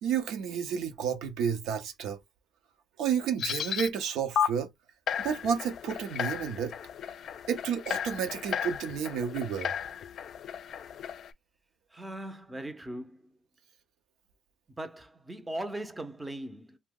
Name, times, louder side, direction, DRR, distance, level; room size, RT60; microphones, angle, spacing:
voice 1, 0.0-2.2 3.0-4.7 5.2-6.8 7.5-9.7, right 7 dB, 80° right, 0.6 m, -31 dB
sound 1, 3.4-3.9 4.4-4.5 5.1-11.3, left 8 dB, 55° left, 0.3 m, -34 dB
voice 2, 11.9-13.2 14.8-16.8, right 1 dB, 10° right, 0.5 m, -39 dB
2.8 x 2.1 x 3.6 m
cardioid pair, 115°, 0 cm